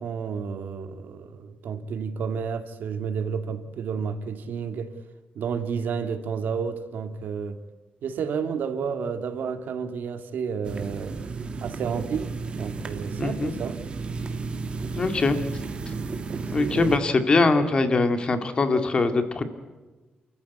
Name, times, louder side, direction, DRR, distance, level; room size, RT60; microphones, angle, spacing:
voice 1, 0.0-4.9 5.3-7.6 8.0-11.2 11.6-13.8 16.3-16.9, right 6 dB, 70° right, 2.3 m, -31 dB
sound 1, 10.6-17.0, right 4 dB, 30° right, 1.9 m, -33 dB
voice 2, 13.2-13.6 15.0-15.4 16.5-19.5, left 3 dB, 30° left, 2.1 m, -22 dB
29.0 x 14.5 x 9.5 m
wide cardioid pair, 175°, 3 cm